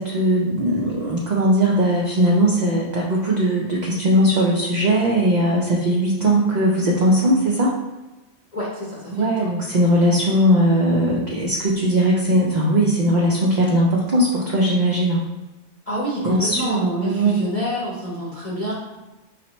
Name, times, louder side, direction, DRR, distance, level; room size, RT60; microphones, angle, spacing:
voice 1, 0.0-7.7 9.1-15.2 16.2-17.4, right 1 dB, 50° right, -3 dB, 0.6 m, -19 dB
voice 2, 8.5-9.3 15.9-18.7, equal, 35° left, -7 dB, 0.8 m, -27 dB
4.8 x 3.1 x 3.0 m, 1.1 s
omnidirectional pair, 1.2 m